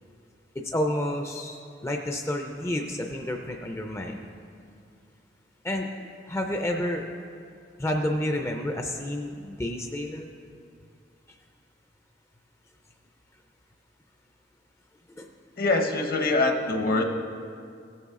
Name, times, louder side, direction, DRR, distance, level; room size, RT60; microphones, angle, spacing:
voice 1, 0.6-4.3 5.6-7.0 7.8-10.3 15.2-15.3, left 1 dB, 15° left, 3 dB, 0.4 m, -30 dB
voice 2, 15.6-17.0, left 2 dB, 55° left, 4 dB, 0.9 m, -24 dB
16.0 x 7.1 x 3.6 m, 2.4 s
head